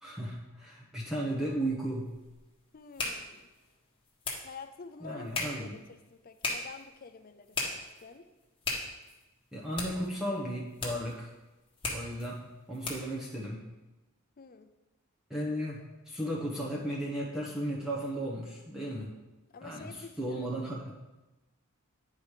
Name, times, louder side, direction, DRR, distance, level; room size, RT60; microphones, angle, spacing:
voice 1, 0.0-2.1 5.0-5.7 9.5-11.3 11.9-13.7 15.3-19.2 19.6-20.9, right 1 dB, ahead, -6 dB, 1.0 m, -35 dB
sound 1, 1.6-13.2, left 3 dB, 25° left, 1.5 m, -40 dB
voice 2, 2.7-3.5 4.4-8.3 14.4-14.7 19.5-20.5, left 5 dB, 40° left, 9 dB, 0.5 m, -49 dB
8.9 x 4.9 x 4.9 m, 1.1 s
head